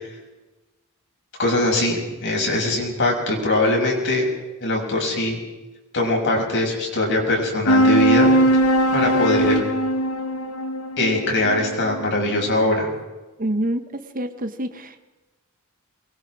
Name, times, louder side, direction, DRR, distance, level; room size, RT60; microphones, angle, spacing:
voice 1, 1.4-4.3 4.6-5.4 5.9-8.3 8.9-9.6 11.0-12.9, left 2 dB, 55° left, 0 dB, 6.5 m, -21 dB
sound 1, 7.7-12.5, right 1 dB, 70° left, 1.5 m, -20 dB
voice 2, 13.4-13.8 14.1-15.0, right 1 dB, 40° right, 8 dB, 1.3 m, -26 dB
24.5 x 22.0 x 4.9 m, 1.1 s
head